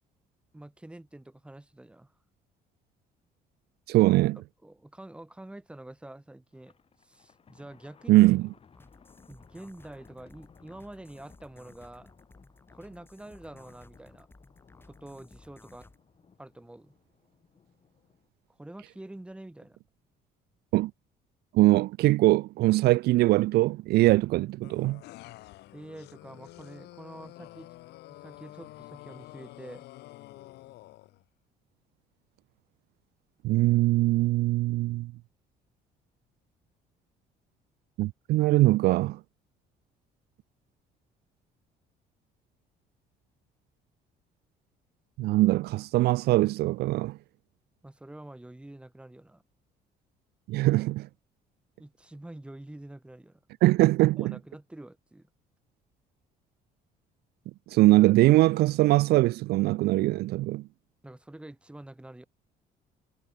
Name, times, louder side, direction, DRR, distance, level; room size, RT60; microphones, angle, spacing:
voice 1, 0.5-2.1 4.6-6.7 7.0-8.3 9.3-12.1 12.7-14.3 14.8-15.9 16.4-16.9 18.6-19.8 25.7-27.7 28.1-29.9 47.8-49.4 51.8-53.4 54.2-55.3 61.0-62.3, right 1 dB, 5° right, 1.2 m, -46 dB
voice 2, 3.9-4.4 8.1-8.5 20.7-20.9 21.5-25.0 33.4-35.1 38.0-39.2 45.2-47.2 50.5-51.1 53.6-54.4 57.7-60.6, right 18 dB, 70° right, 0.4 m, -22 dB
Thunder, 6.5-18.3, left 6 dB, 35° left, 5.2 m, -60 dB
sound 1, 8.8-16.0, left 2 dB, 15° left, 3.4 m, -57 dB
sound 2, 24.6-31.2, left 17 dB, 80° left, 2.1 m, -48 dB
cardioid pair, 110°, 17 cm